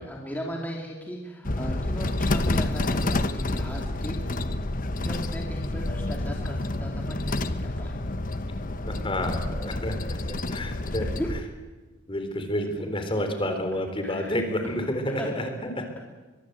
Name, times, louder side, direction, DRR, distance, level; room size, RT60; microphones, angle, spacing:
voice 1, 0.0-4.4 5.0-8.0 11.2-11.3 14.0-15.3, equal, 10° left, -1 dB, 2.8 m, -37 dB
sound 1, 1.4-11.4, left 2 dB, 45° left, 1.1 m, -29 dB
voice 2, 8.9-11.1 12.1-15.7, left 1 dB, 25° left, 6 dB, 3.7 m, -30 dB
23.5 x 23.0 x 7.9 m, 1.3 s
head